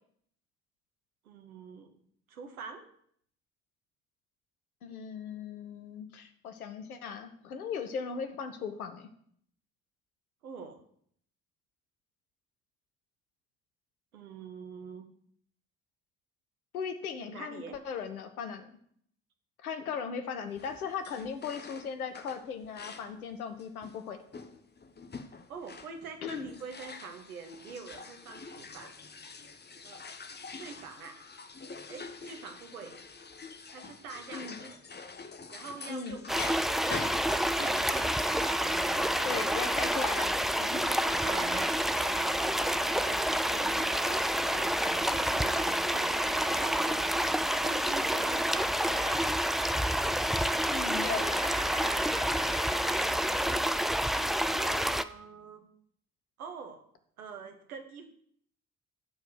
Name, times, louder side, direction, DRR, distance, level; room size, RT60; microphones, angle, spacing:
voice 1, 1.2-1.9 2.3-2.8 10.4-10.8 14.1-15.1 17.2-17.8 25.5-28.9 29.8-30.1 30.5-31.2 31.9-33.0 33.7-34.8 35.5-36.9 37.2-38.1 42.5-44.0 45.1-46.9 47.5-49.3 53.1-53.7 54.5-55.7 56.4-56.8 57.2-58.1, right 5 dB, 80° right, 6 dB, 1.1 m, -45 dB
voice 2, 4.8-9.1 16.7-18.7 19.6-24.2 26.2-26.5 34.3-34.7 35.9-36.2 39.2-41.2 50.7-51.4, left 6 dB, 80° left, 8 dB, 0.9 m, -38 dB
sound 1, 20.5-23.2 23.6-38.7, left 4 dB, 25° left, 1.0 m, -45 dB
sound 2, 36.3-55.0, equal, ahead, 0.3 m, -28 dB
sound 3, 37.7-53.2, right 4 dB, 40° right, 1.7 m, -45 dB
14.0 x 4.7 x 6.4 m, 0.64 s
figure-of-eight pair, 40°, 42 cm